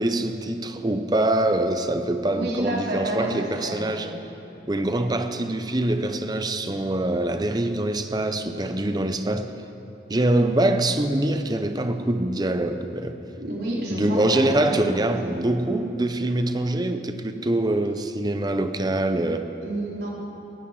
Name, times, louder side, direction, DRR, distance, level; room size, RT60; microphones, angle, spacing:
voice 1, 0.0-4.1 4.7-9.5 10.1-13.2 13.9-19.5, right 1 dB, 25° right, 0.7 m, -24 dB
voice 2, 2.3-4.2 13.4-15.3 19.6-20.1, right 1 dB, 70° right, 3.9 m, -30 dB
18.0 x 16.0 x 4.9 m
head